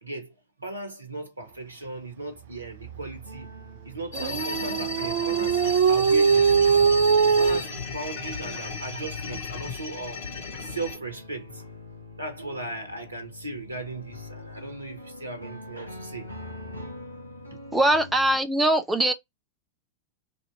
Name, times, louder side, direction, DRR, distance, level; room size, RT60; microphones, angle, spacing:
voice 1, 0.0-3.5 3.8-6.6 7.3-10.3 10.6-11.7 12.2-16.4 17.5-17.6, right 2 dB, 80° right, 0.8 m, -37 dB
sound 1, 2.3-18.4, left 1 dB, 85° left, 0.9 m, -43 dB
sound 2, 4.1-11.0, left 3 dB, 55° left, 1.2 m, -34 dB
Dog, 4.1-7.6, right 6 dB, 55° right, 0.4 m, -21 dB
voice 2, 17.7-19.1, right 1 dB, 10° right, 0.7 m, -21 dB
2.8 x 2.7 x 4.3 m
figure-of-eight pair, 90°, 0 cm